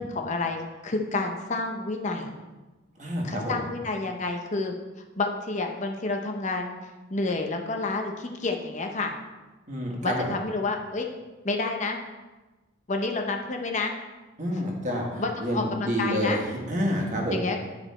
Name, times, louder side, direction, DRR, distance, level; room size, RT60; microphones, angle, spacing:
voice 1, 0.0-2.3 3.2-4.7 5.2-6.8 7.1-9.1 10.0-11.1 11.4-12.0 12.9-13.9 15.2-16.4 17.3-17.6, left 3 dB, 40° left, 3 dB, 0.7 m, -29 dB
voice 2, 3.0-3.6 9.7-10.3 14.4-17.4, equal, 40° right, -1 dB, 1.6 m, -28 dB
9.6 x 5.0 x 4.3 m, 1.2 s
head